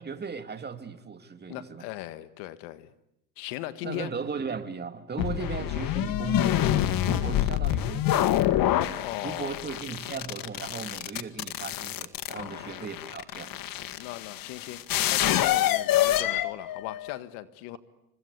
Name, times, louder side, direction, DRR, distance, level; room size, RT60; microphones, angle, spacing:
voice 1, 0.0-1.9 3.8-8.4 9.2-13.6, right 5 dB, 20° right, 8 dB, 2.5 m, -37 dB
voice 2, 1.5-2.9 3.4-4.1 8.9-9.7 12.4-12.9 14.0-14.8 15.1-17.8, left 15 dB, 60° left, 12 dB, 1.8 m, -38 dB
sound 1, 5.2-17.2, left 13 dB, 45° left, 1.6 m, -27 dB
29.0 x 24.5 x 8.3 m, 0.81 s
hypercardioid pair, 95°, 46 cm